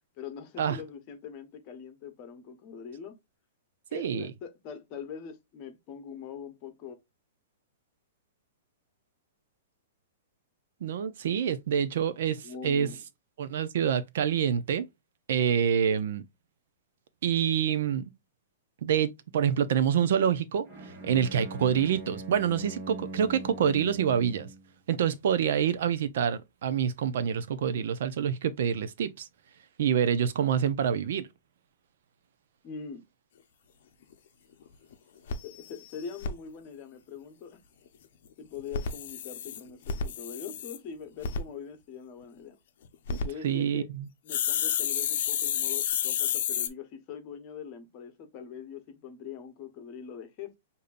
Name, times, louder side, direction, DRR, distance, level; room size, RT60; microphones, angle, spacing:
voice 1, 0.2-3.1 3.9-7.0 12.4-13.0 32.6-33.0 35.4-37.6 38.4-42.6 43.2-43.9 44.2-50.6, left 7 dB, 30° left, 1.0 m, -42 dB
voice 2, 3.9-4.3 10.8-12.9 13.4-14.9 15.3-16.2 17.2-18.1 18.8-24.5 24.9-29.3 29.8-31.3 43.1-43.2 43.4-44.1, right 8 dB, 65° right, 0.5 m, -27 dB
Bowed string instrument, 20.6-24.7, right 2 dB, 30° right, 1.4 m, -41 dB
sound 1, 34.1-34.2 34.6-34.7 34.9-35.0 35.3-36.3 38.6-40.8 41.2-41.4 42.8-43.2 44.3-46.7, left 8 dB, 55° left, 0.7 m, -30 dB
6.5 x 2.7 x 2.5 m
hypercardioid pair, 160°, 0 cm